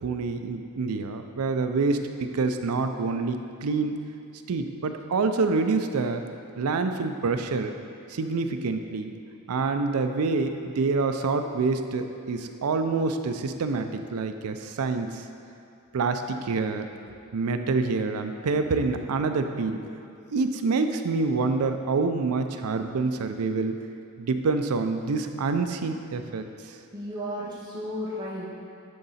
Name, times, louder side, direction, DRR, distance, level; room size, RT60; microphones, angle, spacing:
voice 1, 0.0-2.0 2.3-3.9 4.5-6.2 6.6-7.7 8.1-9.1 9.5-15.1 15.9-16.9 17.3-19.8 20.3-23.8 24.2-26.5, right 4 dB, 90° right, 7 dB, 0.5 m, -26 dB
voice 2, 26.9-28.5, equal, 20° right, -9 dB, 1.5 m, -33 dB
9.9 x 3.9 x 4.2 m, 2.5 s
head